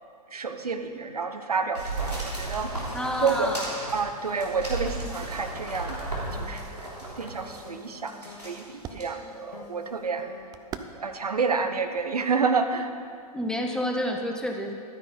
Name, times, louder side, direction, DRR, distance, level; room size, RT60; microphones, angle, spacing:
voice 1, 0.3-3.5 3.9-10.3 10.9-12.9, right 5 dB, 75° right, 7 dB, 1.0 m, -29 dB
sound 1, 1.8-7.6 8.1-8.6 9.0-9.1, right 2 dB, 90° right, 3.2 m, -34 dB
voice 2, 2.9-3.7 13.3-14.7, left 1 dB, 5° left, 2 dB, 0.9 m, -29 dB
sound 2, 5.5-11.9, left 5 dB, 60° left, 1.6 m, -50 dB
sound 3, 6.7-13.0, right 7 dB, 20° right, 0.5 m, -47 dB
12.5 x 9.4 x 5.6 m, 2.2 s
figure-of-eight pair, 100°, 20 cm